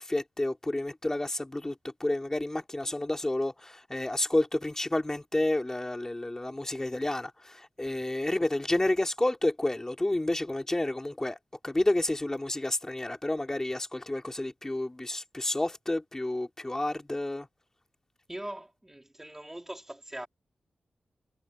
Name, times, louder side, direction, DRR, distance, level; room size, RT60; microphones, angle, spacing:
voice 1, 0.0-11.4 11.6-17.5, left 1 dB, 20° left, 3.0 m, -30 dB
voice 2, 18.3-20.3, right 1 dB, 15° right, 3.8 m, -41 dB
cardioid pair, 65°, 3 cm